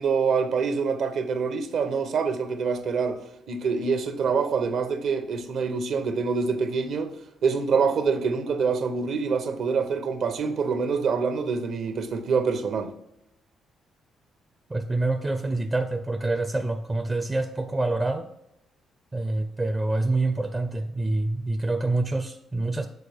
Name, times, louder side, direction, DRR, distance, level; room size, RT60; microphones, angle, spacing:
voice 1, 0.0-3.2 3.5-7.1 7.4-12.9, right 5 dB, 70° right, 0.8 m, -25 dB
voice 2, 14.7-18.3 19.1-22.9, right 2 dB, 20° right, 0.5 m, -26 dB
6.7 x 4.1 x 3.5 m
cardioid pair, 90°, 0 cm